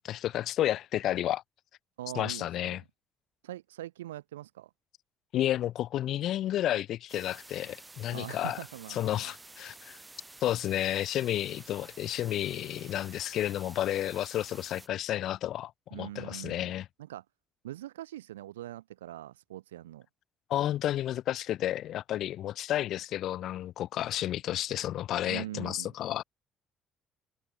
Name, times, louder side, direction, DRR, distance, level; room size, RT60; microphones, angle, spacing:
voice 1, 0.0-1.4 2.2-2.8 5.3-8.6 8.9-10.0 10.4-16.9 20.5-26.2, left 12 dB, 55° left, 2.0 m, -31 dB
voice 2, 2.0-2.8 3.4-4.7 8.1-9.3 15.9-16.7 17.0-17.2 17.6-20.1 25.3-25.9, right 14 dB, 75° right, 3.5 m, -42 dB
sound 1, 7.1-14.9, right 2 dB, 15° right, 6.5 m, -51 dB
figure-of-eight pair, 50°, 0 cm